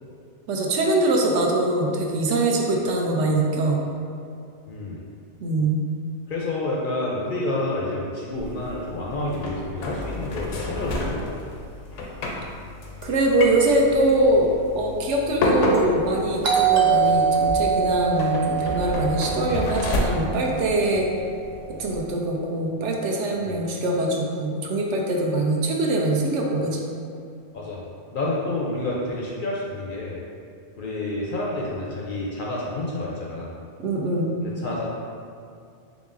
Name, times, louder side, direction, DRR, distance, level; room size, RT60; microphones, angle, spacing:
voice 1, 0.5-3.8 5.4-5.8 13.0-14.5 14.8-21.1 21.8-26.8 33.8-34.3, right 2 dB, 75° right, -1 dB, 0.9 m, -23 dB
voice 2, 4.7-5.0 6.3-11.3 20.9-21.0 23.4-23.6 27.5-27.8 28.1-30.2 30.8-33.6 34.4-34.9, left 2 dB, 60° left, -4 dB, 0.6 m, -29 dB
sound 1, 8.4-22.0, left 2 dB, 85° left, 0.9 m, -30 dB
Doorbell, 16.4-21.0, right 6 dB, 55° right, 0.5 m, -23 dB
4.0 x 3.6 x 2.5 m, 2.4 s
omnidirectional pair, 1.2 m